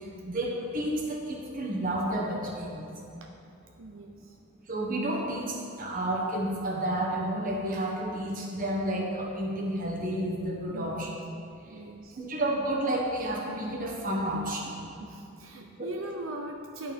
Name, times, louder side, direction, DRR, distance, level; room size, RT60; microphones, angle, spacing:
voice 1, 0.0-2.9 4.7-11.1 12.2-14.8 15.8-15.9, right 1 dB, 45° right, -1 dB, 1.3 m, -31 dB
voice 2, 3.8-4.4 10.7-11.1 11.6-12.2 15.0-16.9, right 2 dB, 85° right, 2 dB, 0.6 m, -40 dB
10.5 x 4.4 x 5.1 m, 2.6 s
head